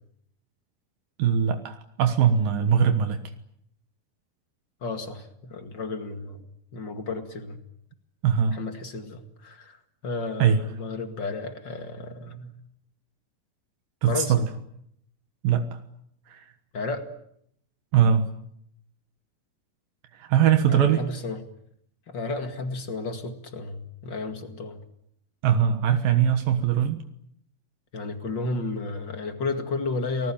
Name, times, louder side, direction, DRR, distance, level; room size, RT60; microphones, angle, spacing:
voice 1, 1.2-3.2 8.2-8.6 10.4-10.6 14.0-14.5 15.4-15.8 16.3-16.5 17.9-18.3 20.2-21.0 25.4-27.0, right 8 dB, 75° right, 8 dB, 3.0 m, -21 dB
voice 2, 4.8-6.4 6.7-7.6 8.5-9.8 10.0-12.5 14.1-14.3 16.7-17.1 20.7-21.4 22.1-24.8 27.9-30.3, left 3 dB, 35° left, 7 dB, 2.3 m, -32 dB
30.0 x 20.0 x 8.8 m, 0.73 s
omnidirectional pair, 4.1 m